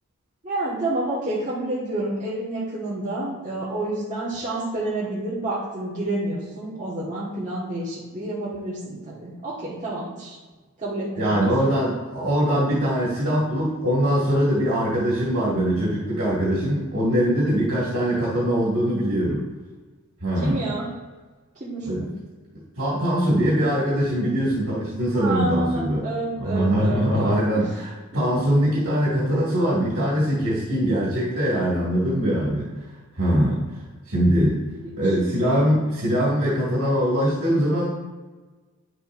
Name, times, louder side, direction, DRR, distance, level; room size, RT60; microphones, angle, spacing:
voice 1, 0.4-10.4 10.8-11.5 20.4-20.9 21.5-22.1 25.1-27.6 34.6-35.1, right 2 dB, 35° right, -8 dB, 1.5 m, -29 dB
voice 2, 11.1-19.5 20.2-20.7 21.8-22.1 22.8-26.1 26.4-32.8 33.2-33.6 34.1-34.6 35.0-37.9, equal, 70° right, -8 dB, 2.2 m, -22 dB
10.0 x 7.0 x 2.6 m, 1.3 s
head